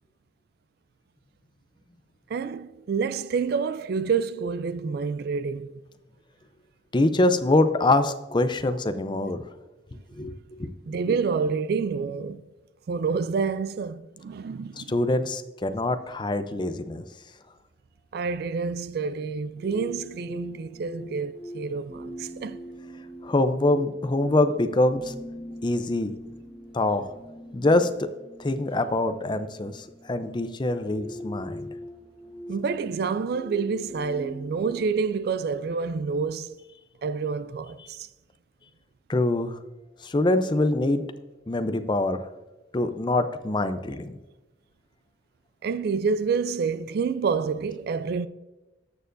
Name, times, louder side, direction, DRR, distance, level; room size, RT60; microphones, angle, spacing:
voice 1, 2.3-5.7 10.9-12.4 12.9-14.9 18.1-22.6 32.5-36.6 37.0-38.1 45.6-48.3, right 5 dB, 55° right, 0.3 m, -28 dB
voice 2, 6.9-9.4 10.2-10.3 10.6-10.7 14.8-17.0 23.2-25.1 25.6-26.1 26.7-27.1 27.5-28.1 28.4-31.7 39.1-39.6 40.0-41.0 41.5-42.2 42.7-44.1, left 2 dB, 25° left, 0.5 m, -24 dB
sound 1, 19.6-34.8, equal, 5° right, 1.4 m, -42 dB
13.5 x 6.8 x 2.6 m
head